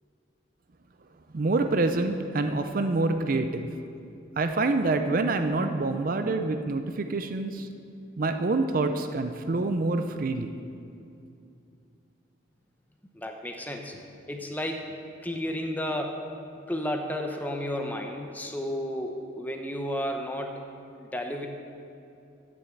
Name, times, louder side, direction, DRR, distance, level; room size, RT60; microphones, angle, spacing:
voice 1, 1.3-3.7 4.4-7.7 8.2-10.5, right 3 dB, 45° right, 7 dB, 0.5 m, -26 dB
voice 2, 13.1-14.0 14.3-15.0 15.2-16.3 16.7-20.7 21.0-21.5, equal, 10° left, 3 dB, 0.7 m, -32 dB
9.1 x 7.0 x 7.8 m, 2.6 s
head